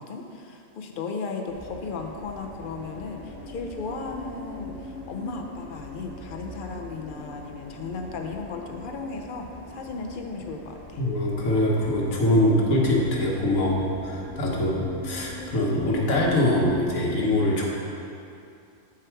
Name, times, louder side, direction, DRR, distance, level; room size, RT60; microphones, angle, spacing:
voice 1, 0.0-11.0, left 4 dB, 55° left, 3 dB, 0.6 m, -35 dB
sound 1, 1.5-16.8, left 1 dB, 90° right, 2.1 m, -40 dB
voice 2, 11.0-17.7, left 1 dB, 85° left, -4 dB, 1.5 m, -23 dB
7.9 x 4.8 x 4.4 m, 2.6 s
omnidirectional pair, 1.4 m